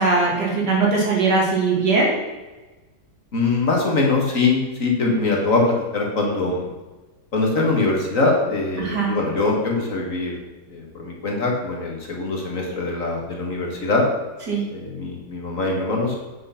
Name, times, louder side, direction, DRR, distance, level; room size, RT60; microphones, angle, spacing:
voice 1, 0.0-2.1 8.8-9.1 14.5-14.6, right 3 dB, 80° right, -3 dB, 3.1 m, -20 dB
voice 2, 3.3-6.7 7.3-10.4 10.7-14.0 14.7-16.2, left 3 dB, 50° left, -1 dB, 2.1 m, -22 dB
8.4 x 6.2 x 5.8 m, 1.2 s
omnidirectional pair, 1.8 m